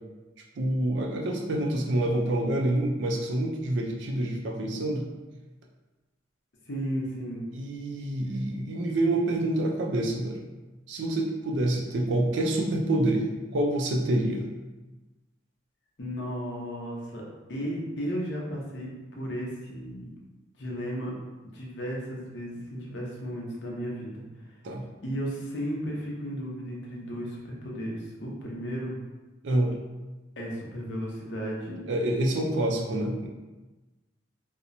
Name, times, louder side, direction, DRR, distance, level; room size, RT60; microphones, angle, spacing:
voice 1, 0.6-5.1 7.5-10.4 10.9-13.3 13.5-14.5 24.6-24.8 29.4-29.7 31.9-33.3, right 1 dB, 65° right, 0 dB, 0.4 m, -27 dB
voice 2, 6.7-7.4 16.0-17.2 17.5-20.1 20.6-21.1 21.5-24.2 25.0-29.0 30.4-31.8, equal, 65° left, -3 dB, 0.6 m, -34 dB
2.8 x 2.1 x 2.5 m, 1.2 s
head